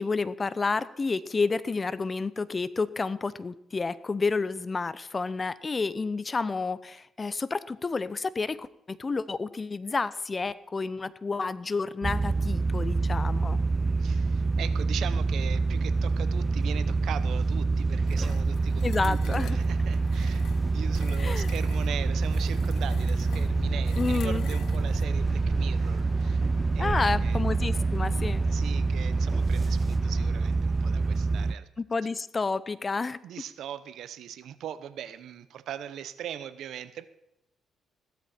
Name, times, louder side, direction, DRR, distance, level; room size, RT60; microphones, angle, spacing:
voice 1, 0.0-13.6 18.8-19.6 21.2-21.5 24.0-24.5 26.8-28.4 31.8-33.2, left 4 dB, 30° left, 17 dB, 0.7 m, -30 dB
sound 1, 12.0-31.5, right 3 dB, 25° right, 0.4 m, -26 dB
voice 2, 14.0-27.4 28.5-31.7 33.2-37.1, right 10 dB, 75° right, 14 dB, 0.9 m, -40 dB
sound 2, 17.9-30.3, left 4 dB, 45° left, 1.9 m, -44 dB
sound 3, 18.1-25.1, left 12 dB, 80° left, 0.4 m, -49 dB
16.0 x 13.0 x 4.4 m, 0.84 s
cardioid pair, 90°, 0 cm